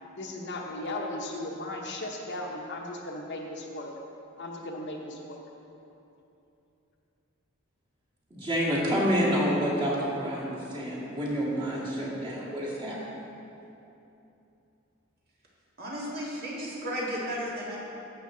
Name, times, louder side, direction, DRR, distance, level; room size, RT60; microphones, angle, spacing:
voice 1, 0.2-3.9 4.4-5.4, left 1 dB, 55° left, 0 dB, 0.9 m, -36 dB
voice 2, 8.3-13.0, equal, 25° right, -7 dB, 2.2 m, -28 dB
voice 3, 15.8-17.8, equal, 45° right, -5 dB, 2.0 m, -34 dB
11.0 x 7.4 x 3.9 m, 2.9 s
head